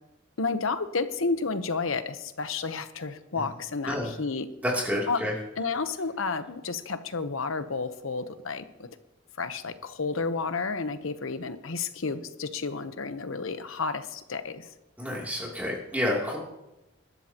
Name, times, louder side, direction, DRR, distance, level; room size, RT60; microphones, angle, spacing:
voice 1, 0.4-4.5 5.1-5.2 5.6-8.9 9.4-14.7, left 4 dB, 80° left, 10 dB, 0.9 m, -31 dB
voice 2, 4.6-5.3 15.0-16.4, left 1 dB, 10° right, -4 dB, 3.0 m, -29 dB
21.0 x 12.0 x 3.0 m, 0.96 s
head